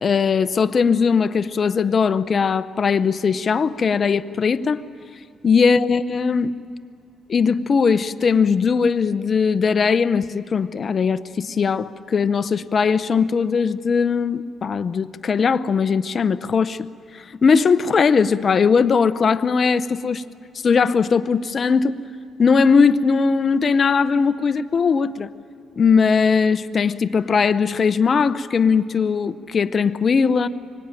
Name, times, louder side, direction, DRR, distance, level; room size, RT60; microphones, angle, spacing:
voice 1, 0.0-4.8 5.4-6.6 7.3-16.8 17.4-20.2 20.6-22.0 22.4-25.3 25.8-30.5, left 5 dB, 45° left, 0.8 m, -19 dB
24.5 x 21.0 x 9.1 m
cardioid pair, 90°, 0 cm